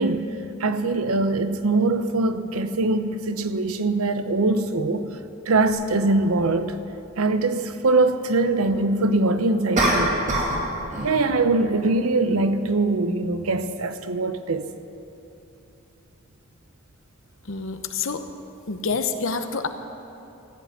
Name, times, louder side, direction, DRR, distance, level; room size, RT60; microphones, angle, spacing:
voice 1, 0.0-5.1 5.5-6.8 7.2-10.2 11.0-14.7, right 2 dB, 85° right, 0.8 m, -22 dB
sound 1, 9.7-10.6 10.9-11.2, right 1 dB, 35° right, 2.2 m, -23 dB
voice 2, 17.4-18.2 18.7-19.7, left 4 dB, 65° left, 0.9 m, -27 dB
14.5 x 8.5 x 9.2 m
head